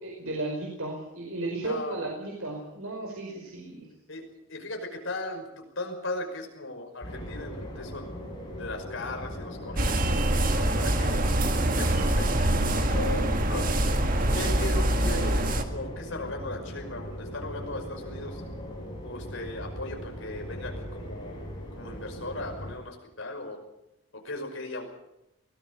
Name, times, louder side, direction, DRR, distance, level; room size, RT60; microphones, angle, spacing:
voice 1, 0.0-3.9, right 2 dB, 85° right, 0 dB, 4.9 m, -34 dB
voice 2, 1.6-2.0 4.1-8.1 8.6-10.0 10.5-11.2 11.6-12.5 12.9-13.7 14.3-18.4 19.0-21.4 21.7-23.6 24.1-24.9, left 2 dB, 65° left, 3 dB, 5.7 m, -37 dB
sound 1, 7.0-22.8, equal, 20° left, 7.4 m, -39 dB
sound 2, 9.8-15.6, right 1 dB, 40° right, 1.9 m, -25 dB
23.5 x 18.5 x 6.7 m, 0.90 s
head